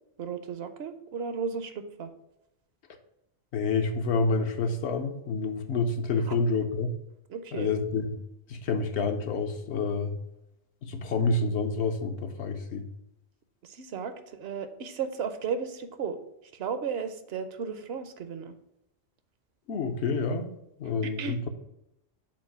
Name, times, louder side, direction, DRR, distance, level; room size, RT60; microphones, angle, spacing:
voice 1, 0.2-2.1 6.3-6.4 7.3-7.7 13.6-16.2 16.5-18.6 20.8-21.4, right 6 dB, 70° right, 9 dB, 0.9 m, -34 dB
voice 2, 3.5-6.9 7.5-8.1 8.5-10.1 10.8-12.9 19.7-20.5 20.8-21.5, left 3 dB, 80° left, 6 dB, 1.0 m, -28 dB
7.3 x 2.6 x 5.6 m, 0.84 s
omnidirectional pair, 1.1 m